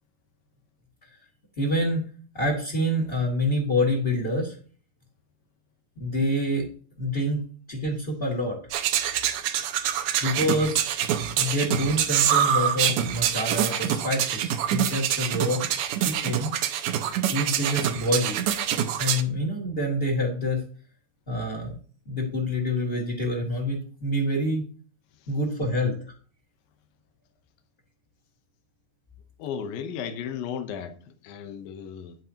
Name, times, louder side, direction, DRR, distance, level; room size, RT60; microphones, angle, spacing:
voice 1, 1.6-2.1 2.3-4.5 6.0-6.7 7.0-7.4 7.7-8.6 10.2-10.8 11.3-15.6 16.0-16.5 17.3-18.4 19.0-20.6 21.3-21.7 22.0-24.7 25.3-25.9, left 1 dB, 20° left, 1.6 m, -26 dB
sound 1, 8.7-19.2, right 10 dB, 75° right, 2.1 m, -25 dB
voice 2, 29.4-30.9 31.2-32.2, left 8 dB, 80° left, 2.7 m, -34 dB
10.0 x 9.3 x 2.9 m
omnidirectional pair, 4.1 m